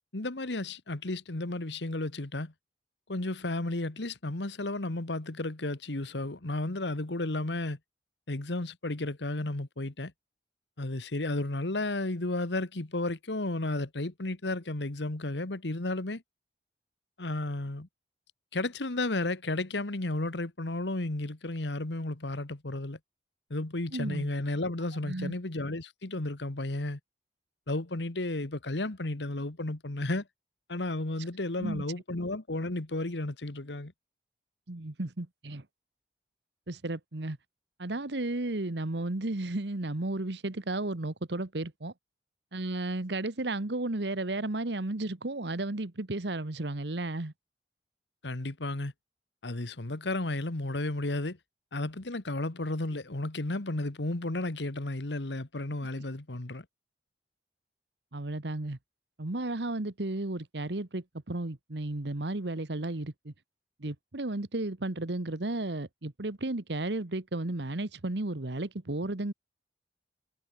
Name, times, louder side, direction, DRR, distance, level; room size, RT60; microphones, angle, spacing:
voice 1, 0.1-2.5 3.1-7.8 8.3-10.1 10.8-16.2 17.2-17.9 18.5-23.0 23.5-27.0 27.7-30.3 30.7-33.9 48.2-48.9 49.4-51.4 51.7-56.6, left 2 dB, 80° left, 1.6 m, -33 dB
voice 2, 23.9-24.3 25.0-25.3 31.6-31.8 34.7-35.6 36.7-37.4 37.8-41.9 42.5-47.3 58.1-58.8 59.2-63.3 63.8-69.3, right 2 dB, 70° right, 1.4 m, -33 dB
head